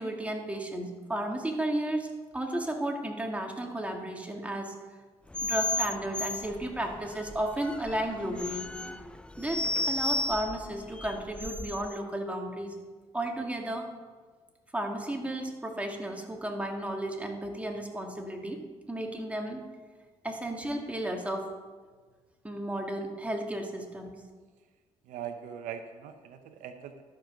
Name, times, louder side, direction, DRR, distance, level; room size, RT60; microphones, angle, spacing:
voice 1, 0.0-2.1 2.3-4.7 5.4-8.7 9.4-12.8 13.1-13.9 14.7-19.6 20.2-21.5 22.4-24.1, right 1 dB, 10° right, 1 dB, 2.1 m, -33 dB
sound 1, 5.3-12.0, left 2 dB, 10° left, 0.4 m, -34 dB
voice 2, 25.0-27.0, right 8 dB, 80° right, 8 dB, 0.7 m, -41 dB
13.0 x 5.3 x 6.0 m, 1.4 s
supercardioid pair, 65°, 13 cm